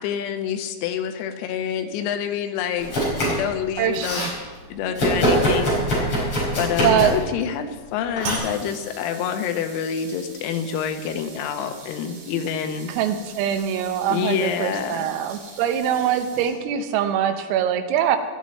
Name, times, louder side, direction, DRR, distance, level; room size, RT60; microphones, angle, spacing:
voice 1, 0.0-4.2 4.7-12.9 14.1-15.1, left 8 dB, 90° left, 7 dB, 3.8 m, -27 dB
Domestic sounds home sounds, 2.8-3.5 3.8-4.3 5.0-7.3 8.2-8.4, equal, 30° left, 4.7 m, -23 dB
voice 2, 3.8-4.3 6.8-7.2 12.9-18.2, right 9 dB, 85° right, 7 dB, 3.6 m, -23 dB
sound 1, 8.2-16.8, right 4 dB, 65° right, 5.6 m, -39 dB
17.5 x 12.5 x 4.2 m, 1.3 s
omnidirectional pair, 6.0 m